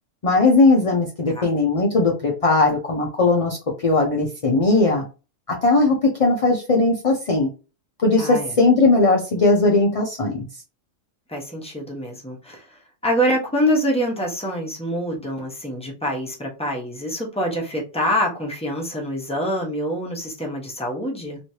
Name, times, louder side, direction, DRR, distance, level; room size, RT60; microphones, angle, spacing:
voice 1, 0.2-3.6 3.8-5.0 5.5-7.5 8.0-10.4, left 3 dB, 45° left, 0 dB, 0.5 m, -18 dB
voice 2, 8.2-8.5 11.3-21.4, equal, 5° left, -2 dB, 0.8 m, -25 dB
3.1 x 3.0 x 2.7 m, 0.32 s
omnidirectional pair, 1.4 m